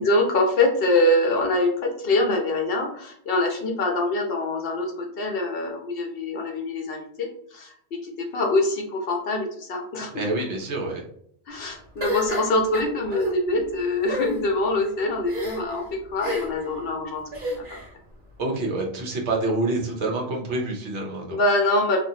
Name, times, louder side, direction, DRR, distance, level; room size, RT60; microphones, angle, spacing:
voice 1, 0.0-10.2 11.5-15.8 16.1-17.8 21.3-22.0, left 2 dB, 65° left, 1 dB, 0.7 m, -24 dB
voice 2, 10.1-11.0 18.4-21.4, right 2 dB, 80° right, 0 dB, 1.0 m, -27 dB
sound 1, 12.0-13.3 14.0-14.4 15.3-15.8 16.2-16.7 17.3-17.9, equal, 50° right, 1.2 m, -30 dB
2.5 x 2.5 x 2.7 m, 0.64 s
omnidirectional pair, 1.2 m